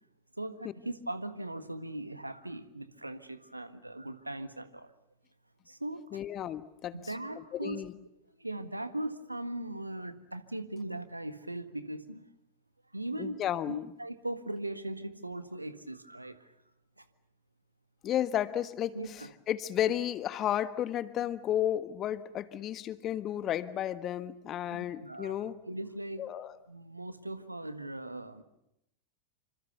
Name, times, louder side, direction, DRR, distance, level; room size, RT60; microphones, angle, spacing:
voice 1, 0.4-4.9 5.7-6.2 6.9-7.8 8.4-12.2 12.9-16.5 17.0-17.1 18.9-19.3 19.9-20.0 24.7-26.3 26.7-28.4, right 1 dB, 85° right, 11 dB, 1.6 m, -39 dB
voice 2, 6.1-6.9 7.5-7.9 13.2-13.9 18.0-25.5 26.2-26.5, left 11 dB, 30° left, 13 dB, 1.4 m, -33 dB
26.5 x 26.5 x 6.9 m, 0.82 s
figure-of-eight pair, 90°, 0 cm